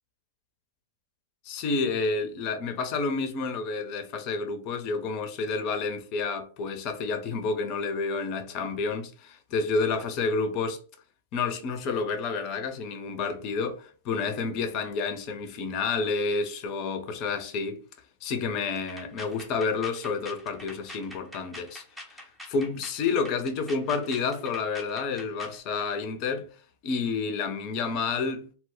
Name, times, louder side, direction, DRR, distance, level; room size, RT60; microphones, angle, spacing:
voice 1, 1.4-10.8 11.3-17.8 18.2-26.5 26.8-28.5, left 4 dB, 45° left, 0.5 m, -30 dB
sound 1, 18.8-25.6, left 1 dB, ahead, 0.6 m, -45 dB
2.1 x 2.1 x 3.7 m
hypercardioid pair, 110°, 0 cm